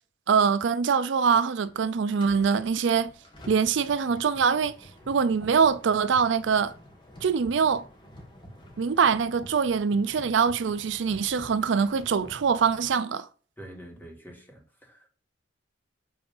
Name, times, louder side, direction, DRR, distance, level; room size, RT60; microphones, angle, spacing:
voice 1, 0.3-3.1 3.5-4.8 5.1-6.7 7.2-7.8 8.8-13.3, right 6 dB, 70° right, 0.4 m, -23 dB
sound 1, 1.6-12.9, equal, 25° left, 2.0 m, -49 dB
voice 2, 13.6-15.1, right 1 dB, 10° left, 2.5 m, -46 dB
8.1 x 3.9 x 5.4 m
head